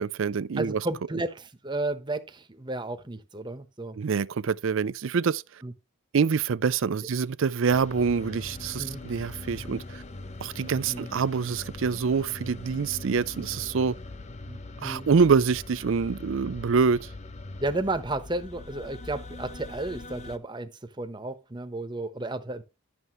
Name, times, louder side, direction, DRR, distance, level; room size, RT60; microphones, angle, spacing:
voice 1, 0.0-0.8 4.0-5.4 6.1-9.8 10.4-13.9 14.8-17.1, right 5 dB, 60° right, 0.4 m, -25 dB
voice 2, 0.6-4.0 5.6-5.7 8.8-9.0 10.9-11.1 14.5-15.1 17.6-20.7 21.0-22.7, right 2 dB, 20° right, 1.0 m, -33 dB
sound 1, 7.7-20.4, left 2 dB, 30° left, 0.7 m, -41 dB
11.0 x 6.8 x 3.1 m
head